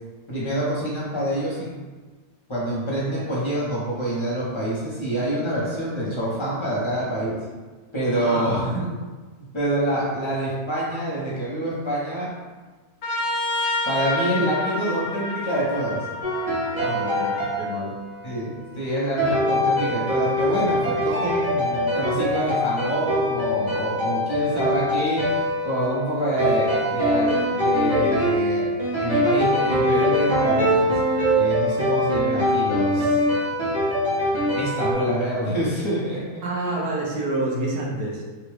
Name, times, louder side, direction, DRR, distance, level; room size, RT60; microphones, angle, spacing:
voice 1, 0.3-1.7 2.5-7.4 7.9-8.6 9.5-12.3 13.8-16.1 18.2-28.7 29.0-31.0 31.3-33.2 34.6-36.4, right 1 dB, 25° left, -8 dB, 0.6 m, -26 dB
voice 2, 8.2-8.9 16.8-17.9 36.4-38.2, right 2 dB, 75° right, -2 dB, 1.1 m, -28 dB
Trumpet, 13.0-17.6, left 2 dB, 70° left, 0.6 m, -29 dB
sound 1, 16.2-18.4 19.2-34.9, equal, 35° right, 0.7 m, -23 dB
3.6 x 2.3 x 3.1 m, 1.3 s
omnidirectional pair, 1.8 m